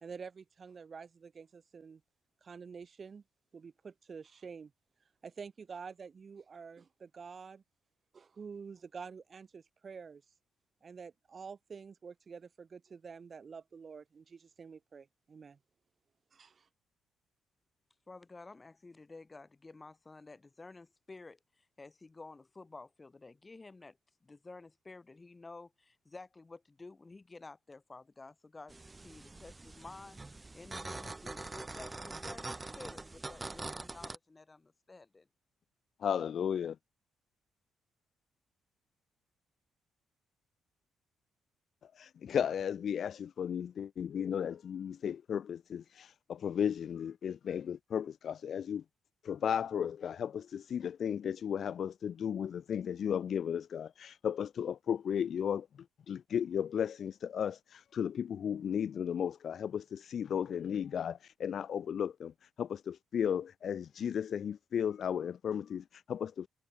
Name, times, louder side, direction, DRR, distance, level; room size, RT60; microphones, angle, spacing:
voice 1, 0.0-2.0 2.4-3.2 3.5-4.7 5.2-7.6 8.1-10.2 10.8-15.6 16.3-16.7, right 5 dB, 40° right, 0.8 m, -48 dB
voice 2, 18.1-35.3, left 3 dB, 25° left, 3.1 m, -52 dB
sound 1, 28.7-34.2, right 2 dB, 20° right, 1.2 m, -44 dB
voice 3, 36.0-36.8 42.0-48.8 49.2-55.7 56.1-66.5, left 8 dB, 60° left, 0.4 m, -35 dB
cardioid pair, 90°, 0 cm